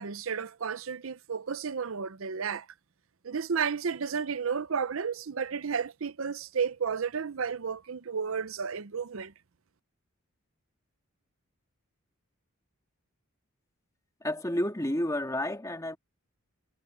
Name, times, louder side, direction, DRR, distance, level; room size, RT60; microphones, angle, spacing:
voice 1, 0.0-2.7 3.2-9.3, right 6 dB, 65° right, 0.6 m, -32 dB
voice 2, 14.2-16.0, left 1 dB, 15° left, 1.9 m, -30 dB
head